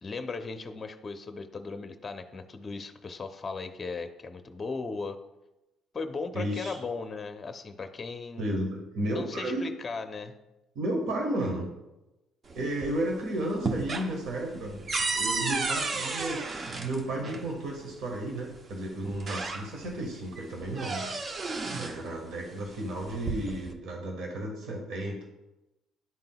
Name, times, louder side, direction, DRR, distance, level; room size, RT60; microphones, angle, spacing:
voice 1, 0.0-5.2 5.9-8.5 9.1-10.3, left 4 dB, 30° left, 7 dB, 0.6 m, -37 dB
voice 2, 6.3-6.8 8.4-9.6 10.7-11.7 12.5-21.0 21.8-25.2, right 1 dB, 70° right, 0 dB, 1.3 m, -33 dB
sound 1, 12.5-13.1 13.4-17.5 18.5-18.6 19.1-20.0 20.4-22.0 22.9-23.7, right 3 dB, 40° right, 0.7 m, -33 dB
11.0 x 3.8 x 2.3 m, 0.97 s
cardioid pair, 90°, 0 cm